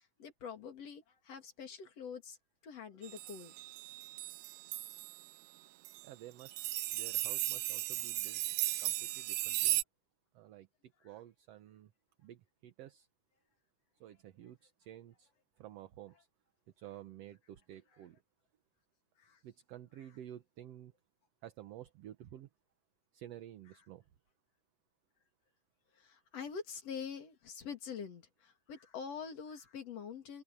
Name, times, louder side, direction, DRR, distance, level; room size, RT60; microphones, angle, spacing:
voice 1, 0.0-2.4 2.6-3.5 19.2-19.4 25.9-30.4, left 6 dB, 60° left, 3.5 m, -45 dB
sound 1, 3.0-5.2 5.8-6.0 6.4-9.8, right 16 dB, 80° right, 2.0 m, -36 dB
voice 2, 6.0-6.6 6.9-8.4 8.8-9.8 10.3-10.7 11.0-11.9 12.2-13.1 14.0-15.3 15.6-16.3 16.8-18.2 19.4-20.9 21.4-22.5 23.1-24.0, right 12 dB, 65° right, 1.9 m, -51 dB
omnidirectional pair, 3.4 m